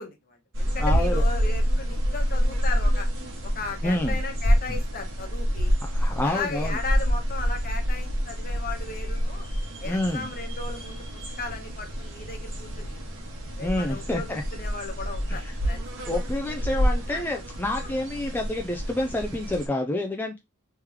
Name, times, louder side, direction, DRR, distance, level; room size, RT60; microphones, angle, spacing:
voice 1, 0.0-3.1 3.5-5.7 6.2-9.5 9.8-11.0 11.4-13.0 13.6-15.8 17.1-17.2, left 3 dB, 45° left, 1.0 m, -36 dB
sound 1, 0.5-19.7, equal, 60° right, 1.3 m, -27 dB
voice 2, 0.8-1.2 3.8-4.2 4.7-4.8 5.8-6.8 9.8-10.3 13.6-14.4 15.3-15.6 16.1-20.4, left 1 dB, 10° left, 0.4 m, -28 dB
3.2 x 3.0 x 3.5 m
head